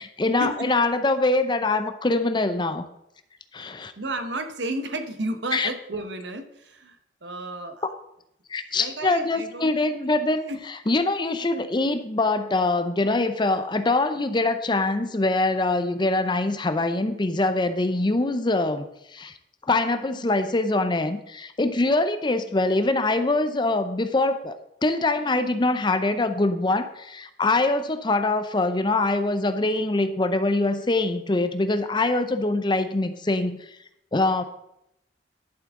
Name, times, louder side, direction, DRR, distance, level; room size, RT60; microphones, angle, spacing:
voice 1, 0.2-2.8 3.5-3.9 5.5-5.7 8.5-10.4 10.9-18.8 19.1-19.3 19.6-33.7 34.1-34.4, left 2 dB, 25° left, 10 dB, 0.6 m, -23 dB
voice 2, 4.0-7.8 8.7-9.7 10.5-10.6, right 2 dB, 80° right, 8 dB, 1.1 m, -32 dB
11.5 x 7.2 x 3.7 m, 0.81 s
head